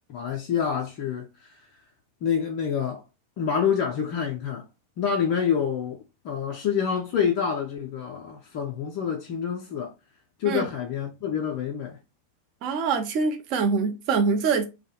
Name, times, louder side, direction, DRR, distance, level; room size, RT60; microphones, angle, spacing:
voice 1, 0.1-1.7 2.2-3.0 3.4-4.7 5.0-9.9 10.4-12.0, left 7 dB, 45° left, 0.4 m, -27 dB
voice 2, 12.6-14.6, right 5 dB, 40° right, 0.5 m, -24 dB
2.2 x 2.1 x 2.8 m
figure-of-eight pair, 90°, 0 cm